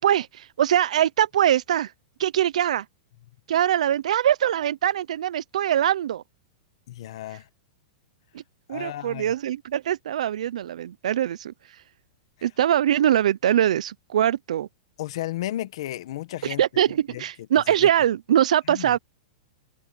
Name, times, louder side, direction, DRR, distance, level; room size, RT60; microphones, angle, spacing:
voice 1, 0.0-1.9 2.2-2.8 3.5-6.2 8.7-11.5 12.4-14.7 16.4-19.0, right 11 dB, 75° right, 0.5 m, -22 dB
voice 2, 6.9-7.5 8.7-9.3 15.0-16.6 17.1-17.2 17.7-17.9 18.7-19.0, left 14 dB, 50° left, 1.3 m, -33 dB
supercardioid pair, 180°, 4 cm